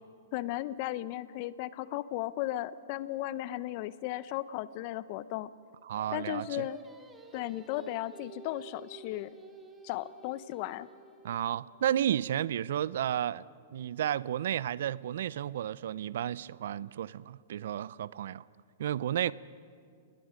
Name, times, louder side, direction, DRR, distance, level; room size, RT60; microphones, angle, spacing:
voice 1, 0.3-5.5 6.1-6.8 7.3-9.3 9.8-10.9 19.2-19.3, left 15 dB, 50° left, 16 dB, 0.9 m, -35 dB
voice 2, 5.8-6.7 11.2-13.4 13.7-18.4 18.8-19.3, right 10 dB, 70° right, 20 dB, 0.6 m, -32 dB
Singing, 6.0-11.3, right 3 dB, 10° right, 2.8 m, -51 dB
28.5 x 21.0 x 5.2 m, 2.3 s
hypercardioid pair, 115°, 0 cm